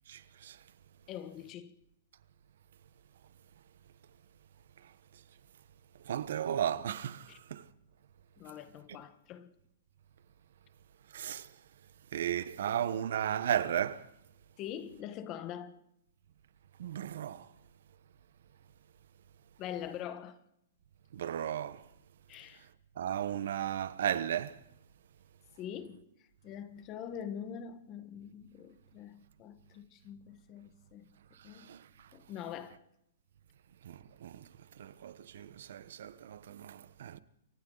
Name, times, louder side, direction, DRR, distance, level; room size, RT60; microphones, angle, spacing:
voice 1, 0.1-0.6 6.1-7.6 11.1-11.5 12.1-14.1 16.8-17.5 21.1-21.8 23.0-24.6 31.5-31.8 33.8-34.5 34.8-37.2, right 10 dB, 65° right, 1.1 m, -35 dB
voice 2, 1.1-1.8 7.3-7.4 8.4-9.5 14.6-15.8 19.6-20.4 22.3-22.7 25.6-26.0 26.4-31.2 31.4-31.7 32.1-32.8, left 9 dB, 25° left, 1.4 m, -44 dB
28.5 x 24.0 x 4.0 m
hypercardioid pair, 165°, 0 cm